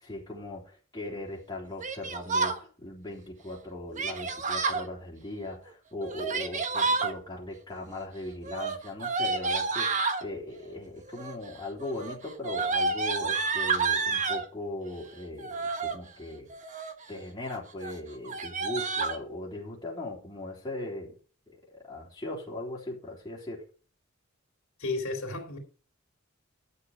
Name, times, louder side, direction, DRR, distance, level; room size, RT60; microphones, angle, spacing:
voice 1, 0.0-16.5 17.1-21.1 21.5-21.6 21.9-23.6, left 1 dB, 20° left, 3.6 m, -39 dB
Yell, 1.8-2.6 4.0-4.8 6.0-7.1 8.4-10.2 11.1-11.5 11.8-14.5 15.4-16.0 16.5-17.0 17.4-17.6 17.8-17.9 18.3-19.2, right 4 dB, 35° right, 1.3 m, -29 dB
voice 2, 24.8-25.6, left 3 dB, 75° left, 3.3 m, -32 dB
12.0 x 7.0 x 4.8 m
head